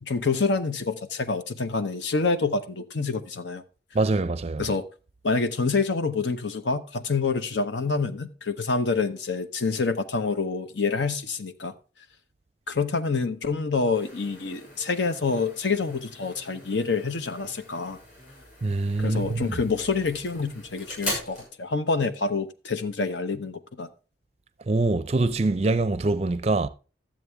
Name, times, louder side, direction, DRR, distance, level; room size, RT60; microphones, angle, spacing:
voice 1, 0.0-3.6 4.6-4.8 5.2-11.7 12.7-18.0 19.0-23.9, left 4 dB, 80° left, 0.8 m, -27 dB
voice 2, 3.9-4.7 18.6-19.6 24.7-26.7, right 2 dB, 35° right, 0.4 m, -24 dB
sound 1, 13.9-21.5, left 1 dB, 45° left, 6.5 m, -40 dB
12.5 x 7.5 x 3.4 m
head